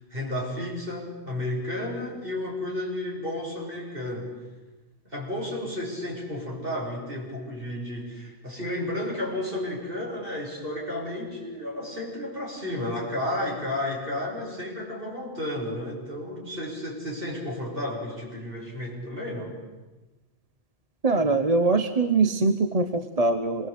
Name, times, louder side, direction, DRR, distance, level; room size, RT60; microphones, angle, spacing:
voice 1, 0.1-4.3 5.0-19.5, left 1 dB, 55° right, -3 dB, 6.8 m, -32 dB
voice 2, 21.0-23.7, right 3 dB, 35° right, 8 dB, 1.1 m, -23 dB
26.5 x 20.5 x 8.4 m, 1.2 s
omnidirectional pair, 1.1 m